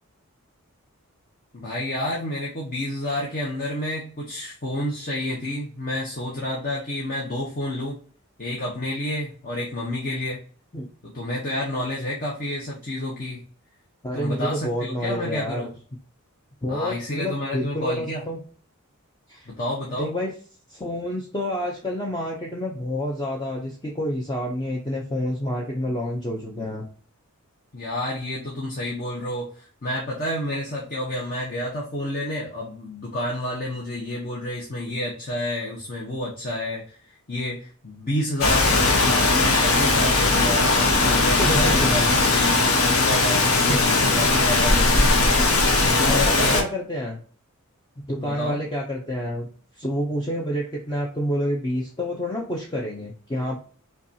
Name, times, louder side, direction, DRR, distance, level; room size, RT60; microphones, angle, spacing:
voice 1, 1.5-8.0 8.4-10.4 11.1-13.4 14.1-15.7 16.7-18.2 19.5-20.1 27.7-37.0 37.3-46.7 48.2-48.6, left 1 dB, 40° left, -4 dB, 0.9 m, -29 dB
voice 2, 14.0-15.7 16.6-18.4 19.3-19.5 20.0-20.3 20.7-26.8 41.4-42.1 43.6-43.8 46.0-47.2 48.1-49.5 49.8-53.6, equal, 20° left, -1 dB, 0.5 m, -28 dB
Rain, 38.4-46.6, left 3 dB, 70° left, 0.9 m, -19 dB
5.5 x 2.3 x 2.7 m, 0.41 s
head